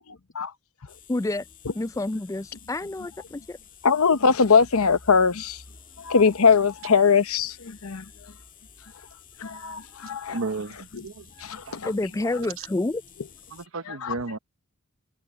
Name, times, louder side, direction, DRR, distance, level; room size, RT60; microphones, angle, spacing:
sound 1, 0.9-13.7, left 6 dB, 40° left, 2.0 m, -51 dB
voice 1, 1.1-1.4 1.8-3.6 11.8-13.0, left 2 dB, 15° left, 0.4 m, -28 dB
voice 2, 3.8-5.6 6.0-8.1 9.4-10.4 10.9-11.0 11.4-11.9 13.8-14.2, left 5 dB, 75° left, 0.9 m, -21 dB
voice 3, 10.3-11.2 11.7-11.8 13.5-14.4, right 3 dB, 65° right, 0.9 m, -33 dB
head